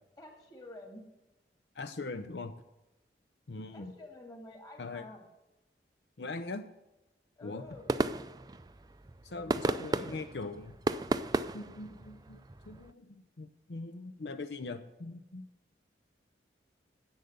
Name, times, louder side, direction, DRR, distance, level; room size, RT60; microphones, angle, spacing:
voice 1, 0.2-1.1 3.7-5.3 7.4-7.9 9.7-10.3, left 2 dB, 20° left, 3 dB, 2.1 m, -50 dB
voice 2, 1.7-2.5 3.5-3.9 4.8-5.1 6.2-6.7 7.4-7.6 9.2-10.8 11.5-12.4 12.6-15.5, left 3 dB, 75° left, 9 dB, 0.6 m, -41 dB
sound 1, 7.7-12.9, right 2 dB, 20° right, 0.4 m, -35 dB
10.5 x 7.9 x 6.9 m, 0.98 s
head